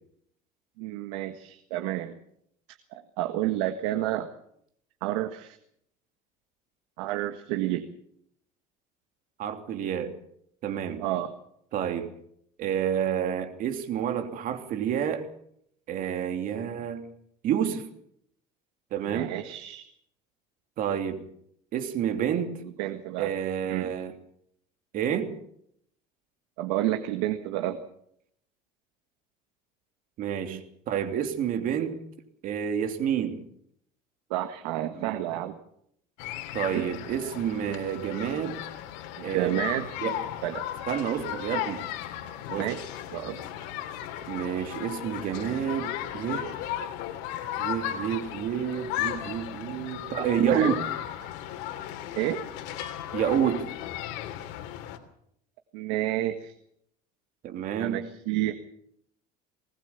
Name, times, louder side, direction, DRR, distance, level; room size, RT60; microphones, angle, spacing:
voice 1, 0.8-2.1 2.9-4.3 5.0-5.6 7.0-7.9 11.0-11.3 16.5-16.8 19.1-19.9 22.8-23.3 23.7-23.9 26.6-27.8 30.5-30.6 34.3-35.6 36.7-36.9 39.2-39.9 40.4-40.6 42.5-43.4 50.5-50.7 52.1-52.4 55.7-56.5 57.8-58.6, right 14 dB, 90° right, 7 dB, 1.7 m, -30 dB
voice 2, 9.4-10.1 10.6-11.0 11.7-12.1 12.6-15.2 15.9-17.1 17.4-17.9 18.9-19.3 20.8-21.3 21.7-22.6 23.2-24.1 24.9-25.4 30.2-32.0 32.4-33.4 34.9-35.1 36.5-38.6 39.2-39.5 40.0-40.2 40.9-41.9 42.5-42.7 44.3-46.5 47.6-50.8 53.1-53.7 57.4-58.1, right 9 dB, 55° right, 7 dB, 3.1 m, -29 dB
sound 1, 36.2-55.0, left 12 dB, 80° left, 2.9 m, -35 dB
20.5 x 19.5 x 7.1 m, 0.70 s
cardioid pair, 130°, 17 cm